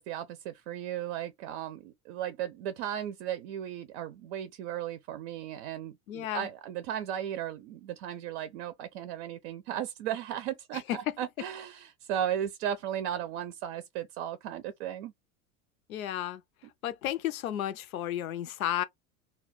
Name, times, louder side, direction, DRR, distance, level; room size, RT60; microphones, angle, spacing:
voice 1, 0.0-15.1, right 10 dB, 60° right, 0.5 m, -36 dB
voice 2, 6.1-6.5 10.9-11.0 15.9-16.4 16.8-18.8, left 12 dB, 85° left, 0.5 m, -32 dB
2.3 x 2.2 x 3.8 m
hypercardioid pair, 80°, 41 cm